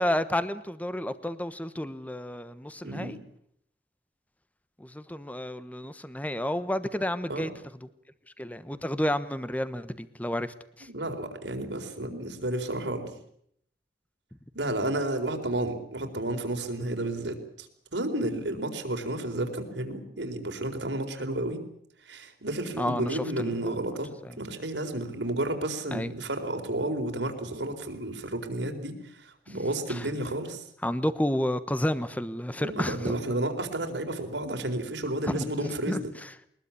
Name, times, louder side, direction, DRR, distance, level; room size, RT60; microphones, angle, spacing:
voice 1, 0.0-3.2 4.8-7.5 8.4-10.9 22.8-23.5 25.9-26.1 29.9-30.1 30.8-33.2 35.2-35.5 35.9-36.3, left 1 dB, 10° left, 13 dB, 1.2 m, -30 dB
voice 2, 2.8-3.2 7.3-7.5 10.9-13.2 14.5-21.6 22.0-24.1 24.4-30.6 32.6-36.1, right 1 dB, 85° right, 5 dB, 4.3 m, -32 dB
22.0 x 21.0 x 8.7 m, 0.69 s
head